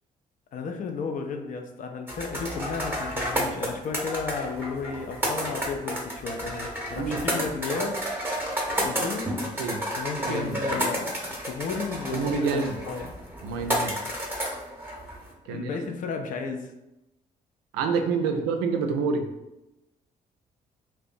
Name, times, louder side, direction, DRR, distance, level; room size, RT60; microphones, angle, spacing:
voice 1, 0.5-8.0 8.8-9.3 10.0-13.1 15.4-16.7, left 5 dB, 40° left, 4 dB, 0.4 m, -33 dB
sound 1, 2.1-15.3, equal, 10° right, 0.8 m, -31 dB
voice 2, 10.2-10.6 12.1-12.7 13.4-13.9 15.5-15.7 17.7-19.3, right 5 dB, 70° right, 4 dB, 0.4 m, -27 dB
2.5 x 2.1 x 2.5 m, 0.92 s
figure-of-eight pair, 45°, 20 cm